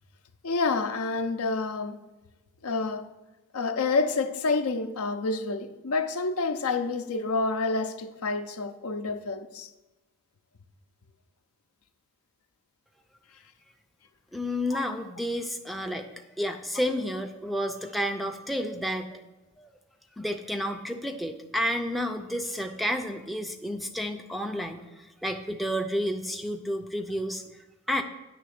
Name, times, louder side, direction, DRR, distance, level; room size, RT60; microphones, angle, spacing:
voice 1, 0.4-2.0 2.6-3.1 3.5-9.7 14.7-14.8, left 3 dB, 70° left, 0.5 m, -28 dB
voice 2, 14.3-19.2 19.6-19.7 20.2-27.4 27.9-28.0, equal, ahead, 0.4 m, -31 dB
9.4 x 3.4 x 6.5 m
head